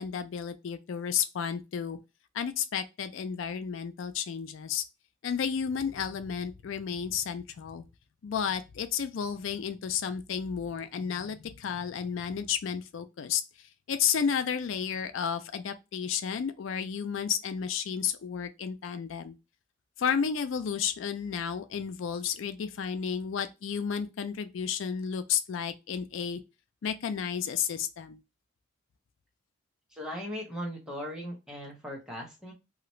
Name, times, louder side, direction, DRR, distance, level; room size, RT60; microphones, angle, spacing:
voice 1, 0.0-2.0 2.3-4.8 5.2-7.8 8.2-19.4 20.0-26.4 26.8-28.2, left 7 dB, 70° left, 0.4 m, -32 dB
voice 2, 29.9-32.5, equal, 5° right, 0.9 m, -38 dB
2.8 x 2.5 x 3.0 m
head